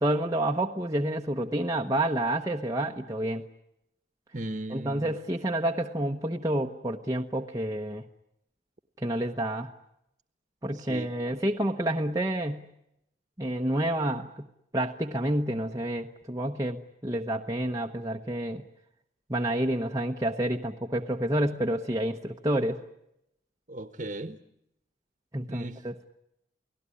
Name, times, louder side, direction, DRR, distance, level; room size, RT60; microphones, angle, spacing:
voice 1, 0.0-3.4 4.7-8.0 9.0-9.7 10.6-12.7 13.4-14.5 14.7-18.6 19.3-22.8 25.3-26.1, right 1 dB, 20° right, 0 dB, 0.9 m, -29 dB
voice 2, 4.3-5.2 10.7-11.1 23.7-24.4 25.5-25.8, right 1 dB, 40° right, 9 dB, 1.3 m, -37 dB
29.5 x 18.5 x 9.9 m, 0.83 s
head